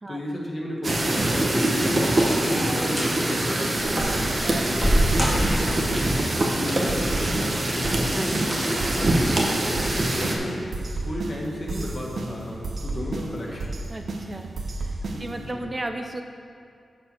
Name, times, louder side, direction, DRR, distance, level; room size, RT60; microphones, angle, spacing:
voice 1, 0.1-2.1 2.3-6.1 6.5-9.5 10.2-13.7 15.1-15.6, left 1 dB, 50° left, -3 dB, 1.8 m, -34 dB
dissolving liversalts, 0.8-10.3, right 1 dB, 45° right, 1.3 m, -24 dB
sound 1, 2.2-2.6 2.9-3.2 3.8-6.0 7.2-7.7 8.2-8.3 9.0-9.2 9.6-9.7, equal, 5° left, 1.8 m, -27 dB
sound 2, 4.0-15.5, right 2 dB, 70° right, 0.9 m, -33 dB
voice 2, 8.1-8.6 13.9-14.5 14.8-16.2, right 2 dB, 25° right, 5 dB, 0.6 m, -35 dB
9.4 x 4.5 x 6.3 m, 2.4 s
cardioid pair, 70°, 0 cm